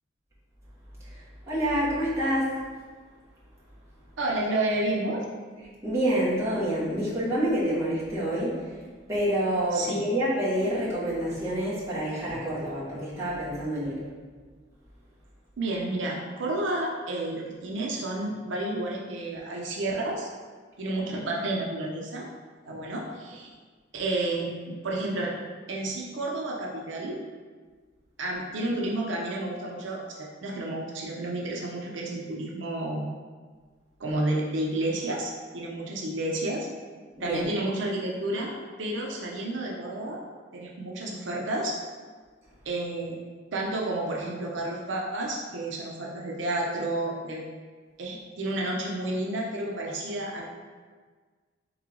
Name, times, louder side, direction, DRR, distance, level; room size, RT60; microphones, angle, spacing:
voice 1, 1.5-2.5 5.8-8.7 9.1-14.0 37.2-37.4, equal, 15° right, -10 dB, 1.4 m, -27 dB
voice 2, 4.2-5.3 9.7-10.0 15.6-20.3 20.8-22.3 22.7-23.5 23.9-25.3 25.7-27.2 28.2-33.1 34.0-36.7 37.2-40.2 40.5-41.7 42.7-43.2 43.5-47.4 48.0-50.5, right 2 dB, 85° right, -2 dB, 0.6 m, -31 dB
3.7 x 3.1 x 3.7 m, 1.5 s
head